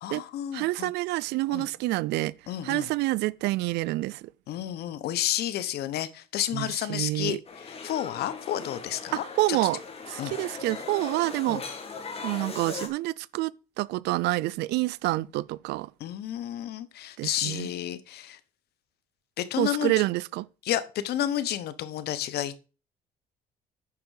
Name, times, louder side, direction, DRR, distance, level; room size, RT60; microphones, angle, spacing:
voice 1, 0.0-0.9 1.5-1.7 2.5-2.9 4.5-7.4 7.7-9.6 10.2-10.3 11.5-11.6 16.0-18.4 19.4-19.9 20.6-22.6, left 11 dB, 70° left, 1.1 m, -31 dB
voice 2, 0.5-2.3 2.6-4.3 6.5-7.4 9.1-9.8 10.1-11.6 12.2-13.5 13.8-15.9 17.2-17.7 19.6-20.5, right 19 dB, 85° right, 0.5 m, -28 dB
sound 1, 7.5-12.9, left 4 dB, 35° left, 2.3 m, -39 dB
9.6 x 4.5 x 6.4 m
cardioid pair, 110°, 17 cm